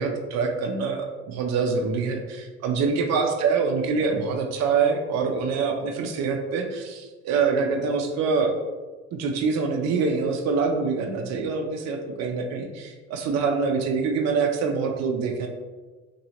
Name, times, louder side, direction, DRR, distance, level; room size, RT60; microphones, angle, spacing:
voice 1, 0.0-8.5 9.1-15.5, right 5 dB, 45° right, 3 dB, 0.6 m, -25 dB
3.0 x 2.7 x 2.8 m, 1.3 s
hypercardioid pair, 60°, 36 cm